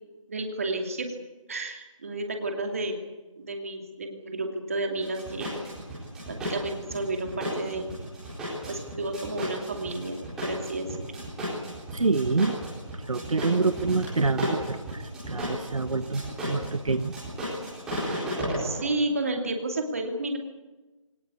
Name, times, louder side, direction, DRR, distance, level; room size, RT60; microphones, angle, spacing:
voice 1, 0.3-1.2 1.5-3.0 3.4-5.5 6.3-7.9 8.7-11.2 18.6-20.4, right 2 dB, 25° right, 4 dB, 2.6 m, -31 dB
sound 1, 5.0-18.8, equal, 5° right, 4.3 m, -34 dB
voice 2, 11.9-12.6 13.1-17.1, right 3 dB, 75° right, 11 dB, 1.3 m, -27 dB
23.5 x 19.0 x 8.4 m, 1.2 s
figure-of-eight pair, 175°, 17 cm